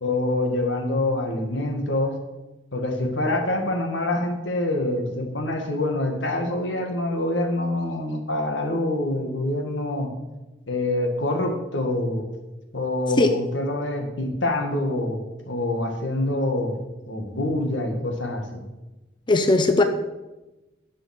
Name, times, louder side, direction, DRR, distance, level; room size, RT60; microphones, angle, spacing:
voice 1, 0.0-2.2 2.7-10.1 10.7-12.2 12.7-16.8 17.1-18.7, left 1 dB, 90° left, 3 dB, 1.8 m, -26 dB
voice 2, 19.3-19.8, left 2 dB, 25° left, 7 dB, 0.6 m, -18 dB
10.5 x 5.5 x 6.5 m, 1.1 s
head